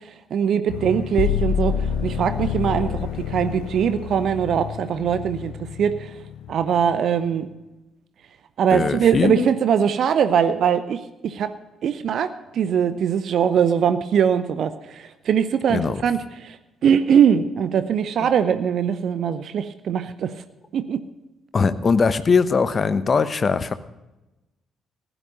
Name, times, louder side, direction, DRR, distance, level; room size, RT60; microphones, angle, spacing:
voice 1, 0.3-6.1 6.5-7.5 8.6-11.5 11.8-16.6 16.8-20.3 20.7-21.0, right 8 dB, 50° right, 12 dB, 0.7 m, -21 dB
sound 1, 0.7-6.9, left 9 dB, 60° left, 0.6 m, -28 dB
voice 2, 8.7-9.5 15.7-16.0 18.2-18.3 21.5-23.7, left 5 dB, 35° left, 13 dB, 0.9 m, -21 dB
15.5 x 11.0 x 5.1 m, 1.0 s
figure-of-eight pair, 45°, 0 cm